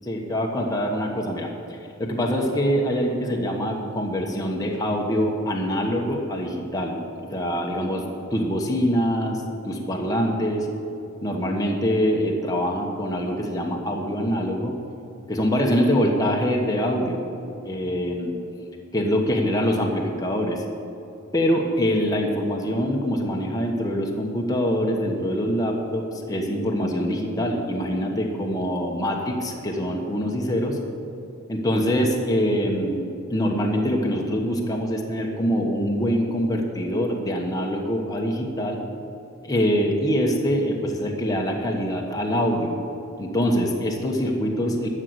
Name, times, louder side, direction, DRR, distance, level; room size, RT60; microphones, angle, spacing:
voice 1, 0.1-1.5 2.0-7.0 7.3-10.7 11.2-14.7 15.3-17.2 17.6-18.3 18.9-20.6 21.3-30.8 31.5-38.8 39.4-42.8 43.2-44.9, equal, 15° left, 0 dB, 1.1 m, -24 dB
12.0 x 6.5 x 7.9 m, 2.9 s
head